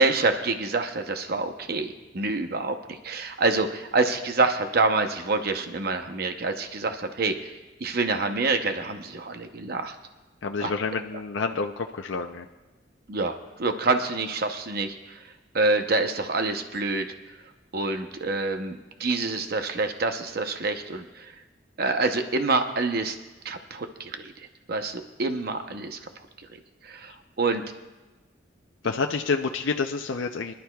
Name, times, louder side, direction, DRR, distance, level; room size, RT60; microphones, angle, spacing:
voice 1, 0.0-7.5 7.8-10.0 10.6-10.7 13.1-15.2 15.5-17.1 17.7-21.3 21.8-23.2 23.4-24.3 24.7-26.0 26.5-27.6, right 3 dB, 55° right, 6 dB, 0.8 m, -27 dB
voice 2, 10.4-12.5 28.8-30.5, left 4 dB, 80° left, 4 dB, 0.6 m, -28 dB
24.5 x 12.0 x 2.3 m, 1.2 s
head